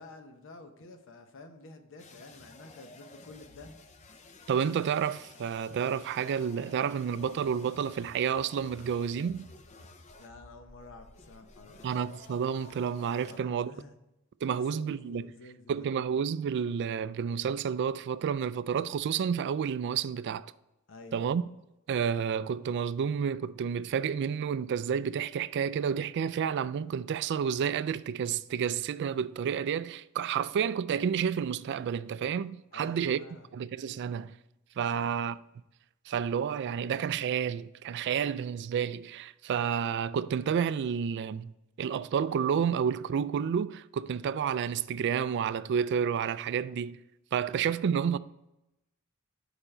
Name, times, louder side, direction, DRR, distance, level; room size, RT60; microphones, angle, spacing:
voice 1, 0.0-3.7 10.2-11.9 13.2-14.0 14.5-15.9 20.9-21.2 32.7-33.5 34.9-35.2, left 3 dB, 65° left, 0.8 m, -50 dB
sound 1, 2.0-13.4, left 2 dB, 35° left, 0.6 m, -53 dB
voice 2, 4.5-9.5 11.8-13.7 14.4-15.2 15.7-20.5 21.1-21.4 21.9-33.2 33.5-34.3 34.8-35.3 36.1-41.5 41.8-47.0 47.3-48.2, right 7 dB, 55° right, 0.3 m, -30 dB
6.9 x 5.0 x 4.3 m
head